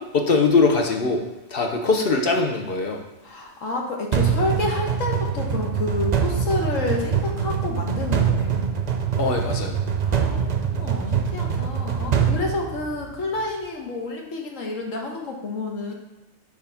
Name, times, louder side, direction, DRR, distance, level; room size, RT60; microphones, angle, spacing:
voice 1, 0.1-1.2 1.5-3.0 9.2-9.8, left 4 dB, 50° left, 2 dB, 1.0 m, -21 dB
voice 2, 3.2-8.6 10.0-10.4 10.8-15.9, left 2 dB, 75° left, 0 dB, 1.5 m, -29 dB
sound 1, 4.1-13.3, right 7 dB, 50° right, 0.5 m, -24 dB
6.3 x 3.7 x 5.7 m, 1.1 s
omnidirectional pair, 1.3 m